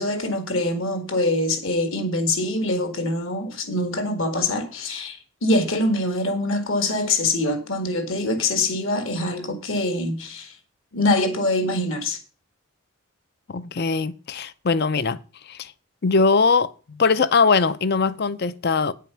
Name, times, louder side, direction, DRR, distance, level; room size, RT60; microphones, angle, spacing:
voice 1, 0.0-10.6 10.9-12.2, left 2 dB, 60° left, 1.8 m, -24 dB
voice 2, 13.5-15.2 15.5-15.7 16.0-18.9, left 4 dB, 45° left, 0.5 m, -21 dB
9.3 x 7.4 x 5.8 m
head